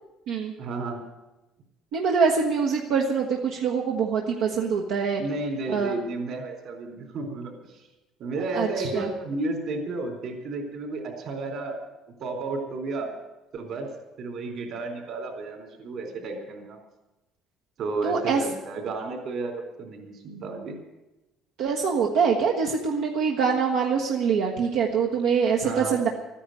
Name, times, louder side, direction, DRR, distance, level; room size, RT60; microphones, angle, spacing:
voice 1, 0.6-1.0 5.2-7.8 8.2-11.8 12.2-13.1 13.5-13.9 14.2-16.8 17.8-20.8 25.6-26.0, right 3 dB, 50° right, 3 dB, 3.9 m, -32 dB
voice 2, 1.9-5.2 5.7-6.0 8.5-9.1 18.0-18.4 21.6-26.1, right 6 dB, 80° right, 0 dB, 1.4 m, -24 dB
14.0 x 10.0 x 9.3 m, 1.0 s
cardioid pair, 165°, 0 cm